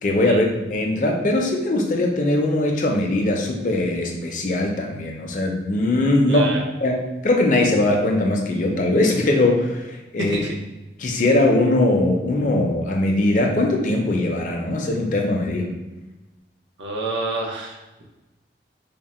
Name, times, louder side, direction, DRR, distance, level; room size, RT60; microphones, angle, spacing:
voice 1, 0.0-6.5 6.8-10.4 11.0-15.7, left 2 dB, 45° left, 1 dB, 0.5 m, -20 dB
voice 2, 6.3-6.6 10.2-10.5 16.8-18.0, right 2 dB, 80° right, 0 dB, 0.7 m, -28 dB
3.5 x 2.1 x 4.1 m, 1.1 s
head